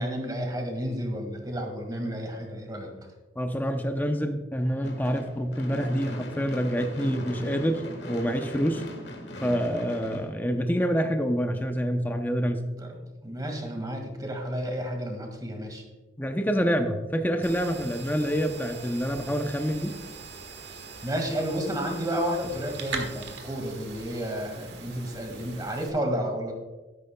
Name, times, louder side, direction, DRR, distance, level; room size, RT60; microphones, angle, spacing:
voice 1, 0.0-2.9 12.8-12.9 13.2-15.8 21.0-26.5, equal, 20° right, 3 dB, 1.9 m, -31 dB
voice 2, 3.4-8.8 9.4-12.7 16.2-19.9, equal, 10° left, 5 dB, 0.7 m, -27 dB
Gunshot gunfire / Fireworks, 4.8-11.1, equal, 65° left, 1.5 m, -40 dB
sound 1, 17.4-25.9, right 4 dB, 70° right, 1.5 m, -41 dB
12.5 x 11.0 x 2.3 m, 1.2 s
head